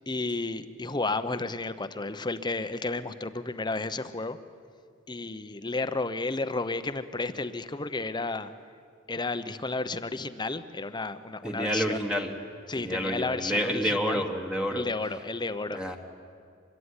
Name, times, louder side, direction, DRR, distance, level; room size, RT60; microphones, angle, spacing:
voice 1, 0.1-4.4 5.1-8.5 9.1-12.0 12.7-14.2 14.7-15.8, left 3 dB, 20° left, 11 dB, 0.9 m, -32 dB
voice 2, 11.4-12.4 12.8-14.9 15.7-16.0, equal, 5° right, 2 dB, 1.6 m, -29 dB
25.0 x 22.5 x 9.8 m, 2.3 s
head